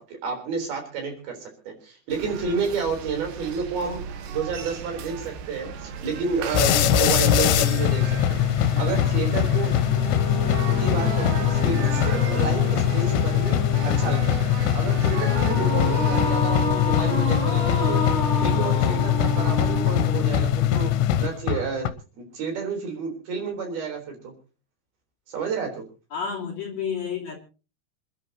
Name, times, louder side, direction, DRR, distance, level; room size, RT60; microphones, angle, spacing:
voice 1, 0.0-4.0 4.3-8.4 8.8-9.7 10.7-14.4 14.7-18.0 18.4-20.9 21.2-21.9 22.1-24.3 25.3-25.8, right 5 dB, 60° right, 3 dB, 5.6 m, -30 dB
sound 1, 2.1-16.3, right 7 dB, 75° right, 3.3 m, -36 dB
sound 2, 6.5-21.9, left 10 dB, 85° left, 3.1 m, -22 dB
sound 3, 9.8-21.2, left 1 dB, 25° left, 6.9 m, -30 dB
voice 2, 26.1-27.4, left 7 dB, 45° left, -2 dB, 3.2 m, -30 dB
27.5 x 10.5 x 2.9 m, 0.34 s
omnidirectional pair, 5.0 m